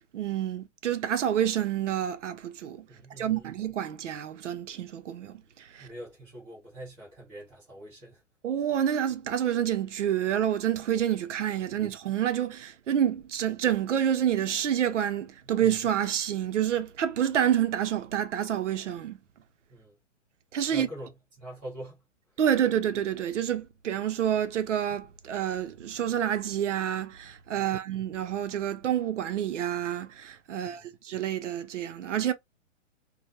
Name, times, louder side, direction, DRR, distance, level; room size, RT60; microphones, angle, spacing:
voice 1, 0.1-2.9 3.2-5.9 8.4-19.2 20.5-20.9 22.4-32.3, right 10 dB, 75° right, 0.6 m, -28 dB
voice 2, 2.9-3.5 5.8-8.2 19.7-19.9 20.7-22.0 30.5-30.9, right 1 dB, 10° left, 0.5 m, -44 dB
2.1 x 2.1 x 2.8 m
hypercardioid pair, 175°, 37 cm